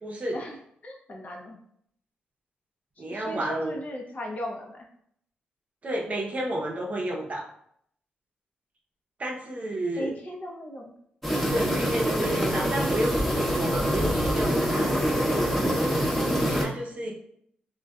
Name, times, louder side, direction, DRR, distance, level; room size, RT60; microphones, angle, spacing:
voice 1, 0.0-0.4 3.0-3.8 5.8-7.5 9.2-10.1 11.5-13.2 13.5-14.9 16.5-17.2, right 1 dB, 40° right, -1 dB, 0.6 m, -31 dB
voice 2, 0.8-1.6 3.0-4.9 10.0-10.9, equal, 45° left, 0 dB, 0.6 m, -36 dB
sound 1, 11.2-16.6, equal, 5° left, 0.8 m, -25 dB
2.5 x 2.1 x 2.3 m, 0.68 s
supercardioid pair, 55°, 4 cm